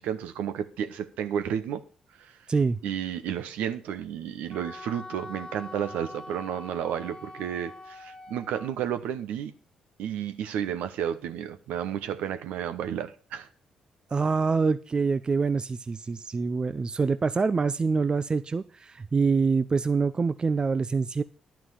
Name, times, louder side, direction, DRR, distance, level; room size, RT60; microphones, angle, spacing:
voice 1, 0.0-1.8 2.2-2.4 2.8-9.5 10.0-13.5, right 9 dB, 65° right, 1.0 m, -32 dB
Wind instrument woodwind instrument, 4.5-8.7, left 2 dB, 35° left, 1.7 m, -43 dB
voice 2, 14.1-21.2, right 4 dB, 30° right, 0.6 m, -25 dB
11.0 x 6.0 x 7.0 m
figure-of-eight pair, 45°, 3 cm